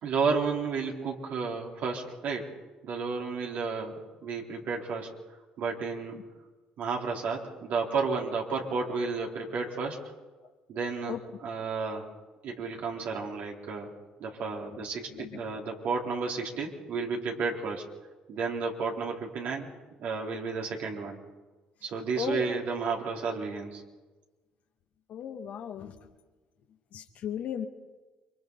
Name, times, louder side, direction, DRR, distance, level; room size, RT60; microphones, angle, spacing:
voice 1, 0.0-2.5 2.8-3.9 4.2-5.1 5.6-6.2 6.8-10.0 10.7-12.1 12.4-13.9 14.2-17.8 18.3-19.7 20.0-21.2 21.8-23.8, right 4 dB, 65° right, -1 dB, 4.0 m, -32 dB
voice 2, 22.2-22.5 25.1-26.0 26.9-27.7, left 8 dB, 65° left, 4 dB, 2.1 m, -35 dB
29.0 x 24.0 x 4.1 m, 1.2 s
supercardioid pair, 70°, 3 cm